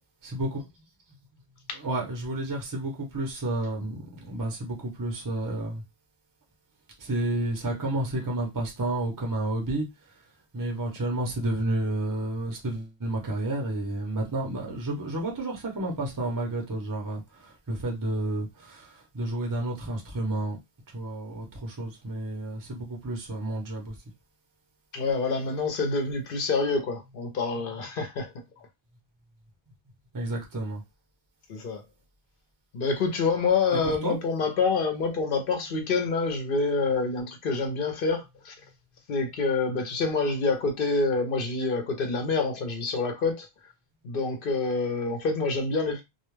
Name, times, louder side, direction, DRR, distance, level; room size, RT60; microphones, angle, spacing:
voice 1, 0.2-0.7 1.7-5.8 7.0-10.2 10.5-20.6 20.9-24.0 30.1-30.8 33.7-34.2, right 1 dB, 25° right, 0.6 m, -31 dB
voice 2, 24.9-28.3 31.5-31.8 32.7-38.5 39.1-43.5 44.0-46.0, left 4 dB, 65° left, 0.8 m, -27 dB
2.3 x 2.1 x 3.1 m
omnidirectional pair, 1.0 m